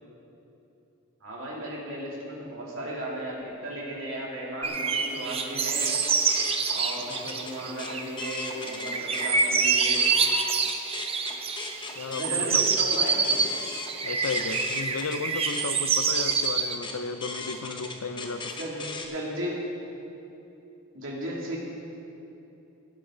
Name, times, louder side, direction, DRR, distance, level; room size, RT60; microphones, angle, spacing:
voice 1, 1.2-6.0 6.7-10.0 12.1-13.5 18.6-19.6 20.9-21.6, right 1 dB, 65° right, -4 dB, 2.7 m, -35 dB
sound 1, 4.6-16.7, right 5 dB, 25° right, 0.6 m, -26 dB
sound 2, 5.7-9.3 9.7-19.1, left 3 dB, 20° left, 0.7 m, -39 dB
voice 2, 12.0-12.7 14.0-18.6, left 4 dB, 90° left, 11 dB, 0.6 m, -34 dB
17.0 x 8.7 x 3.9 m, 2.9 s
head